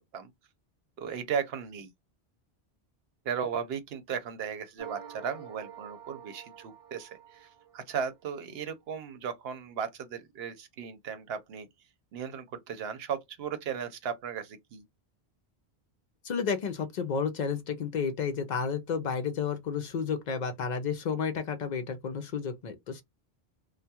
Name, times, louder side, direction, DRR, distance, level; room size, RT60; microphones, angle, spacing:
voice 1, 1.0-1.9 3.2-7.5 7.7-11.7 12.1-14.9, right 7 dB, 70° right, 0.8 m, -36 dB
sound 1, 4.8-8.2, right 9 dB, 40° right, 0.6 m, -48 dB
voice 2, 16.2-23.0, left 6 dB, 55° left, 0.5 m, -31 dB
2.2 x 2.2 x 2.7 m
omnidirectional pair, 1.1 m